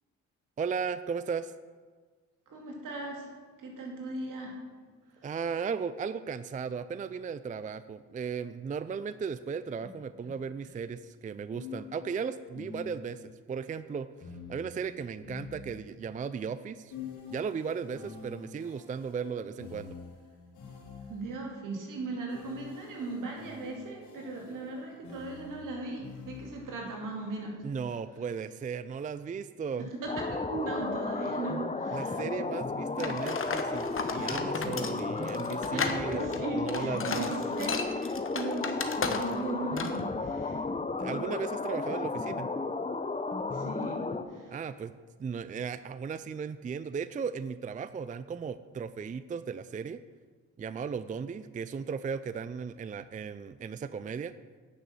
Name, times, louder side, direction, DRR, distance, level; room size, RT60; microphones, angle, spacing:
voice 1, 0.6-1.5 5.2-16.9 17.3-20.0 27.6-29.9 31.9-37.3 41.0-42.5 44.5-44.9 45.2-50.0 50.6-54.4, right 6 dB, 25° right, 14 dB, 0.4 m, -36 dB
voice 2, 2.5-4.6 5.2-5.3 21.1-27.6 30.0-32.2 35.2-35.4 35.7-35.9 36.1-40.7 43.5-44.0 44.3-44.5, right 2 dB, 70° right, 0 dB, 2.4 m, -38 dB
sound 1, 11.5-13.3 14.2-16.1 16.9-21.4 22.3-26.8, left 5 dB, 65° left, 3.0 m, -47 dB
sound 2, 30.1-44.2, left 3 dB, 20° left, 0.8 m, -33 dB
sound 3, 33.0-39.5 39.8-40.0, left 5 dB, 40° left, 1.2 m, -34 dB
9.5 x 6.0 x 6.9 m, 1.5 s
hypercardioid pair, 45°, 33 cm